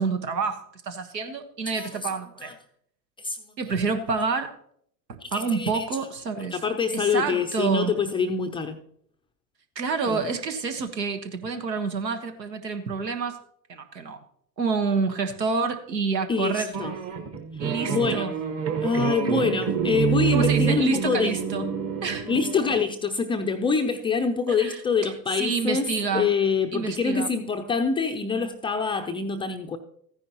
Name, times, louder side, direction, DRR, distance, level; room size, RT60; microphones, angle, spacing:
voice 1, 0.0-2.5 3.6-4.6 5.1-6.6 6.9-7.9 9.7-13.4 13.7-14.2 14.6-16.7 17.6-18.3 20.3-21.7 22.0-22.3 24.5-25.1 25.4-26.3 26.7-27.3, right 5 dB, 85° right, 1.5 m, -28 dB
voice 2, 3.2-3.5 5.2-5.8 6.5-8.8 10.1-10.3 16.3-16.9 17.9-18.3 18.8-21.4 22.3-29.8, left 5 dB, 10° left, 0.4 m, -25 dB
sound 1, 16.7-22.8, right 7 dB, 30° right, 1.2 m, -27 dB
14.0 x 10.0 x 2.9 m
hypercardioid pair, 100°, 49 cm